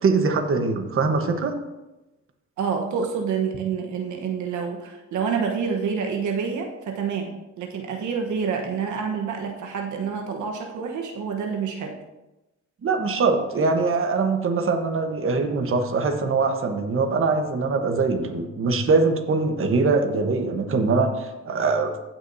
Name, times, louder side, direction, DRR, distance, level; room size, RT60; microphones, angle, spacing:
voice 1, 0.0-1.5 12.8-21.9, right 4 dB, 45° right, 5 dB, 1.3 m, -22 dB
voice 2, 2.6-12.0, right 6 dB, 75° right, 2 dB, 1.2 m, -28 dB
16.5 x 6.1 x 2.8 m, 1.0 s
cardioid pair, 90°, 30 cm